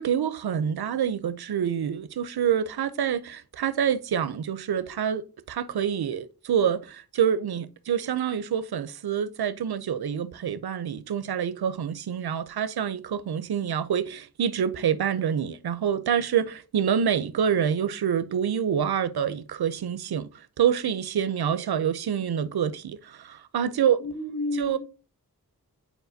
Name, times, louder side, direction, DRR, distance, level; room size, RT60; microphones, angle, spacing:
voice 1, 0.0-20.3 20.6-24.0 24.5-24.8, right 8 dB, 85° right, 0.6 m, -27 dB
voice 2, 24.0-24.8, left 2 dB, 70° left, 3.4 m, -31 dB
8.0 x 4.7 x 2.7 m
cardioid pair, 45°, 37 cm